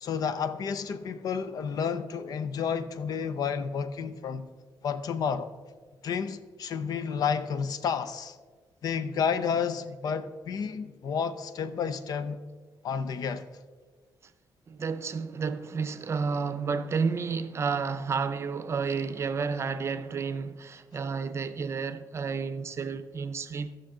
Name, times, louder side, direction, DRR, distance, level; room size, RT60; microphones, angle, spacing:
voice 1, 0.0-4.5 4.8-5.5 6.0-8.4 8.8-12.4 12.8-13.5, left 6 dB, 65° left, 0.6 m, -31 dB
voice 2, 14.7-23.8, right 5 dB, 40° right, 0.6 m, -31 dB
16.0 x 6.3 x 3.8 m
cardioid pair, 105°, 7 cm